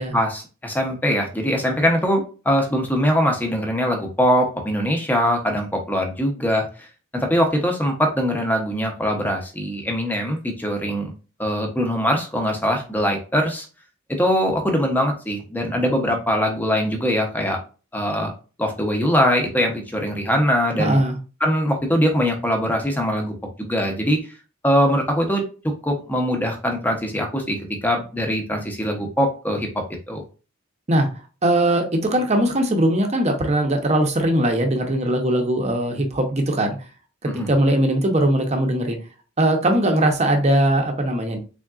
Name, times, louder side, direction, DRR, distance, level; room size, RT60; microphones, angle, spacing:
voice 1, 0.0-6.7 7.1-11.1 11.4-13.7 14.2-17.6 17.9-18.3 18.6-21.0 21.4-24.2 24.6-29.7 30.1-30.2 37.2-37.5, equal, 10° left, 3 dB, 0.7 m, -22 dB
voice 2, 20.8-21.2 30.9-31.1 31.4-36.7 37.5-39.0 39.4-41.4, right 1 dB, 30° right, 4 dB, 0.7 m, -20 dB
3.7 x 3.5 x 2.4 m, 0.34 s
head